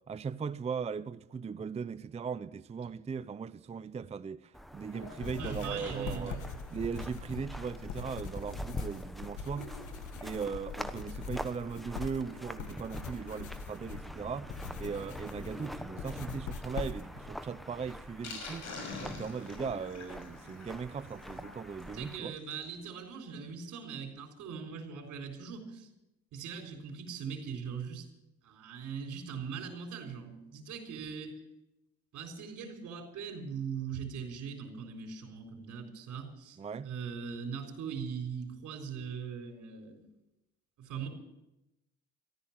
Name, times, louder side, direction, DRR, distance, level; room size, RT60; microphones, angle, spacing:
voice 1, 0.0-6.4 6.7-9.7 10.2-18.7 19.0-22.4 36.6-36.9, right 6 dB, 20° right, 0.4 m, -38 dB
sound 1, 4.5-22.2, equal, ahead, 1.0 m, -45 dB
Sink (filling or washing), 4.8-22.8 23.2-23.3 23.4-23.5 23.9-24.0, left 3 dB, 65° left, 6.0 m, -50 dB
sound 2, 5.2-17.3, left 5 dB, 80° left, 1.3 m, -43 dB
voice 2, 5.4-6.4 21.9-25.9 26.3-28.1 28.4-31.4 32.1-40.0 40.8-41.1, right 6 dB, 80° right, 4.0 m, -40 dB
14.0 x 13.0 x 7.3 m
cardioid pair, 90°, 30 cm